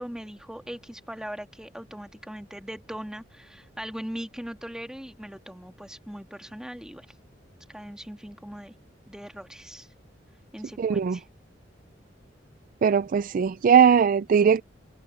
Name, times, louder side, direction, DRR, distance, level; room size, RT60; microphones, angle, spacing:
voice 1, 0.0-7.1 7.7-8.7 9.1-9.9 10.5-11.2, equal, 5° right, 1.7 m, -40 dB
voice 2, 10.8-11.2 12.8-14.6, right 7 dB, 45° right, 0.3 m, -20 dB
head